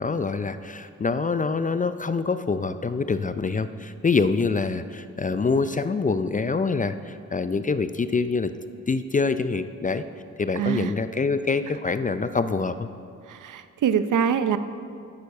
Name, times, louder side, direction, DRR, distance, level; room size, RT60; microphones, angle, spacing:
voice 1, 0.0-8.5 8.9-10.0 10.4-12.9, left 4 dB, 25° left, 11 dB, 0.4 m, -25 dB
voice 2, 10.6-10.9 13.3-14.6, right 8 dB, 70° right, 11 dB, 0.7 m, -24 dB
9.6 x 6.9 x 6.5 m, 2.3 s
cardioid pair, 60°, 32 cm